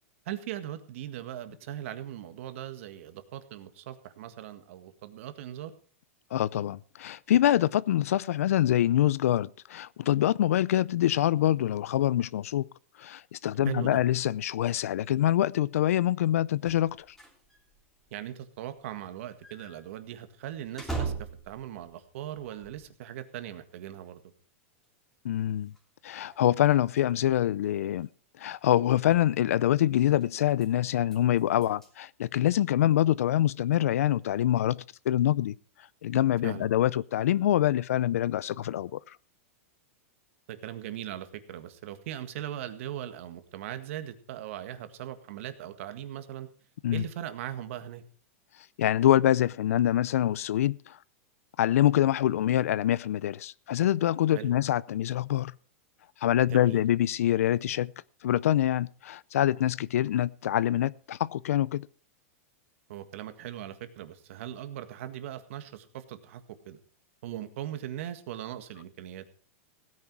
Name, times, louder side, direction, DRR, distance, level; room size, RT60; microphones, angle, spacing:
voice 1, 0.3-5.7 13.7-14.0 18.1-24.2 36.4-36.7 40.5-46.5 46.9-48.0 54.3-54.5 56.5-56.8 62.9-66.8 67.2-69.2, right 11 dB, 65° right, 1.7 m, -39 dB
voice 2, 6.3-12.6 13.0-17.0 25.2-25.7 26.0-28.1 28.4-35.5 36.0-39.0 46.8-47.0 48.8-51.0 51.6-55.5 56.2-57.9 58.2-61.9, left 12 dB, 80° left, 0.5 m, -25 dB
sound 1, 16.6-23.1 23.4-23.5 24.0-24.1 24.8-24.9 25.2-25.3 25.5-25.8 26.1-27.2 27.9-28.1 29.0-29.3 29.8-31.9, right 4 dB, 5° left, 3.1 m, -42 dB
16.5 x 9.7 x 4.7 m
supercardioid pair, 145°, 8 cm